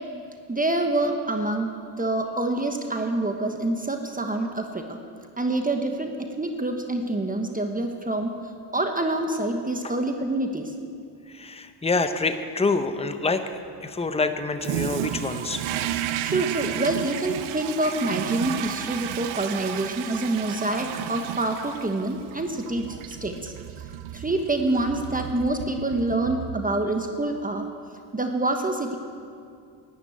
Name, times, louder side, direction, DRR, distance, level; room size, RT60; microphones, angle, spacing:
voice 1, 0.5-1.7 2.0-5.0 5.4-8.3 8.7-10.7 16.2-23.5 24.1-27.6 28.1-29.0, right 2 dB, 20° right, 4 dB, 1.2 m, -26 dB
voice 2, 11.3-13.4 13.8-15.6, left 3 dB, 15° left, 9 dB, 0.9 m, -26 dB
Toilet flush, 14.6-26.9, right 10 dB, 90° right, 0.7 m, -33 dB
11.0 x 10.0 x 8.8 m, 2.4 s
supercardioid pair, 70°, 46 cm